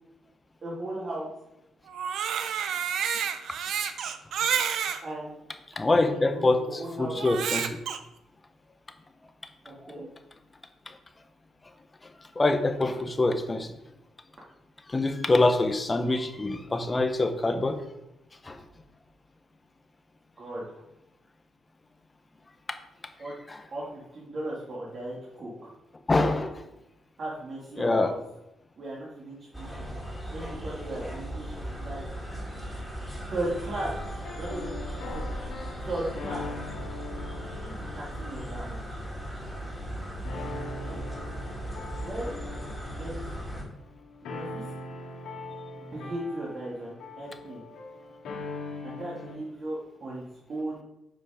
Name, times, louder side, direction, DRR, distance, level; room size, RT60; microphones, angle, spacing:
voice 1, 0.6-1.3 5.0-5.3 5.8-7.2 9.6-10.1 20.4-20.8 23.2-23.3 23.7-25.7 27.2-28.2 28.8-29.8 30.3-32.0 33.3-33.9 34.3-34.7 35.1-35.4 35.8-36.4 37.4-39.0 40.8-41.0 42.0-42.3 42.9-43.3 44.2-44.7 45.8-47.6 48.8-50.2 50.5-50.8, right 1 dB, 45° right, -5 dB, 2.5 m, -37 dB
Crying sobbing, 1.9-5.0 5.7-5.8 7.2-8.0, right 8 dB, 70° right, 0.7 m, -29 dB
voice 2, 5.8-6.6 7.0-7.8 12.4-13.7 14.9-17.8 18.4-18.6 23.5-23.6 26.1-26.6 27.8-28.1, left 2 dB, 20° left, 7 dB, 1.0 m, -25 dB
sound 1, 29.5-43.6, equal, 10° right, 2.6 m, -37 dB
sound 2, 33.5-39.9 40.2-49.4, left 3 dB, 85° left, 2.4 m, -42 dB
7.8 x 5.5 x 5.0 m, 0.88 s
cardioid pair, 90°, 0 cm